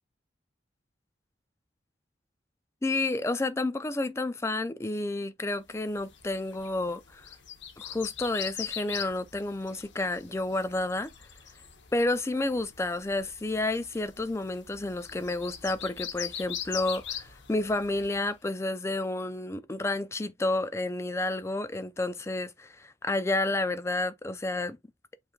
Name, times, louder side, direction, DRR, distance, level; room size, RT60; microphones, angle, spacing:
voice 1, 2.8-7.3 7.8-11.1 11.9-24.8, left 2 dB, 15° left, 0.4 m, -30 dB
sound 1, 5.8-18.3, left 9 dB, 75° left, 0.9 m, -42 dB
7.3 x 3.2 x 2.3 m
head